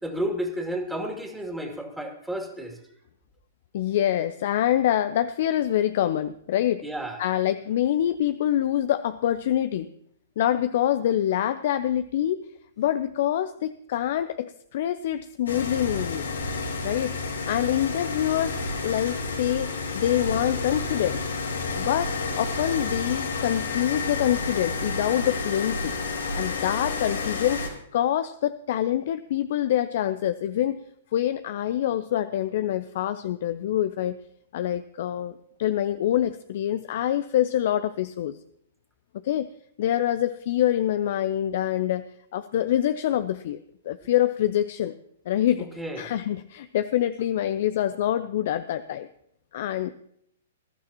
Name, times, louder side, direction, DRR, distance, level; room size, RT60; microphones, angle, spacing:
voice 1, 0.0-2.8 6.8-7.2 45.6-46.1, equal, 5° right, 2 dB, 2.5 m, -32 dB
voice 2, 3.7-6.9 7.2-9.9 10.4-12.4 12.8-16.3 16.8-21.2 21.8-25.9 26.4-27.6 27.9-30.8 31.1-34.2 34.5-38.3 39.2-39.5 39.8-42.1 42.3-43.6 43.8-44.9 45.3-49.1 49.5-49.9, left 11 dB, 55° left, 12 dB, 0.5 m, -25 dB
sound 1, 15.5-27.7, left 3 dB, 85° left, 2.8 m, -30 dB
20.5 x 12.0 x 2.9 m, 0.71 s
hypercardioid pair, 120°, 0 cm